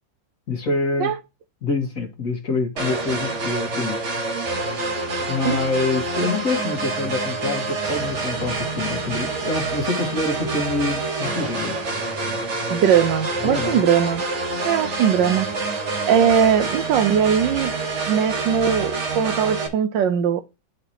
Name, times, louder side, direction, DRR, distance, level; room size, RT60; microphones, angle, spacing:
voice 1, 0.5-1.1 1.6-4.0 5.3-11.8 13.4-13.8, left 3 dB, 45° left, 1.9 m, -26 dB
sound 1, 2.8-19.7, right 3 dB, 40° right, 1.3 m, -27 dB
voice 2, 12.7-14.2 14.6-15.5 16.1-17.7 18.1-20.4, right 8 dB, 75° right, 1.2 m, -20 dB
10.5 x 4.8 x 2.9 m
omnidirectional pair, 2.2 m